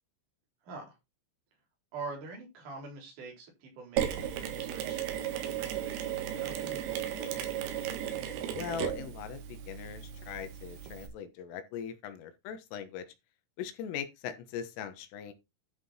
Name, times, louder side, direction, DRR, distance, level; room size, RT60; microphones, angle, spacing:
voice 1, 0.6-1.0 1.9-7.2, right 3 dB, 40° right, 4.9 m, -45 dB
Mechanisms, 4.0-11.1, right 10 dB, 75° right, 4.0 m, -35 dB
voice 2, 8.5-13.1 13.6-15.3, left 8 dB, 80° left, 3.7 m, -40 dB
11.5 x 6.0 x 4.3 m
omnidirectional pair, 6.0 m